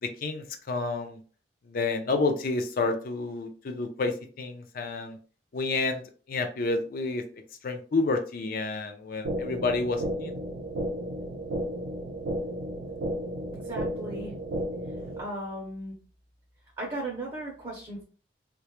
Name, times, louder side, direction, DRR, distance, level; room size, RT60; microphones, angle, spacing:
voice 1, 0.0-1.2 1.7-5.2 5.5-6.0 6.3-7.2 7.6-10.3, left 3 dB, 50° left, 6 dB, 0.4 m, -29 dB
sound 1, 9.2-15.2, right 1 dB, 90° right, 0.5 m, -33 dB
voice 2, 13.6-14.3 15.2-15.9 16.8-18.0, right 1 dB, 25° right, -3 dB, 0.5 m, -36 dB
2.2 x 2.0 x 2.9 m, 0.40 s
head